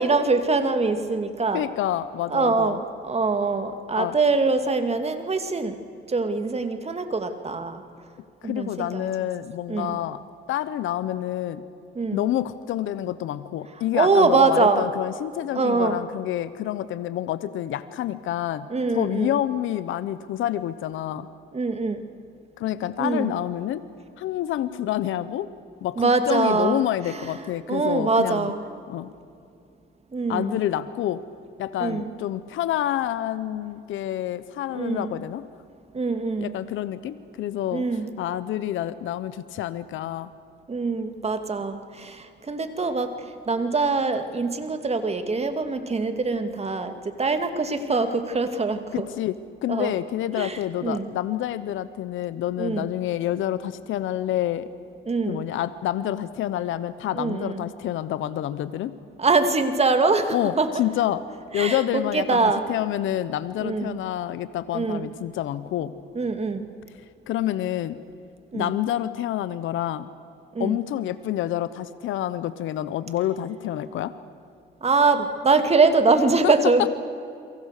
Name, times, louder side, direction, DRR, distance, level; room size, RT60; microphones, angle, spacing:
voice 1, 0.0-1.6 2.3-5.8 6.1-7.8 8.4-9.1 9.7-10.0 12.0-12.2 13.9-14.9 15.5-16.0 18.7-19.3 21.5-22.0 23.0-23.3 26.0-26.8 27.7-28.6 30.1-30.6 31.8-32.1 34.7-35.2 35.9-36.5 37.7-38.1 40.7-43.1 43.5-49.1 49.7-49.9 50.4-51.1 52.6-52.9 55.1-55.4 57.1-57.6 59.2-60.7 61.6-62.6 63.6-63.9 64.7-65.1 66.2-66.7 68.5-68.7 70.5-70.8 74.8-76.9, right 4 dB, 30° right, 8 dB, 2.4 m, -23 dB
voice 2, 1.5-2.8 3.9-4.2 8.4-10.2 10.5-11.6 12.1-18.7 18.9-21.3 22.6-23.8 24.2-25.5 25.8-28.5 28.9-29.1 30.3-31.2 31.6-35.5 36.4-37.8 38.2-40.3 48.9-49.4 49.6-54.7 55.3-58.9 60.3-61.2 61.5-65.9 67.3-68.0 68.5-70.1 70.6-74.1 76.4-76.5, left 12 dB, 80° left, 14 dB, 1.0 m, -28 dB
29.5 x 23.5 x 6.7 m, 2.5 s
cardioid pair, 90°, 20 cm